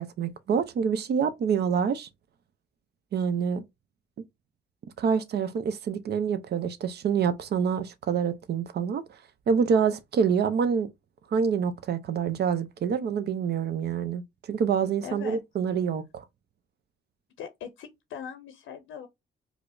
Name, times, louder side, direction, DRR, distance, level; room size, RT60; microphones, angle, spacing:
voice 1, 0.0-2.1 3.1-3.6 5.0-9.0 9.5-10.9 11.3-14.2 14.5-16.2, right 6 dB, 55° right, 0.6 m, -26 dB
voice 2, 15.0-15.4 17.4-19.1, left 7 dB, 80° left, 0.6 m, -40 dB
4.8 x 2.0 x 2.5 m
cardioid pair, 90°, 20 cm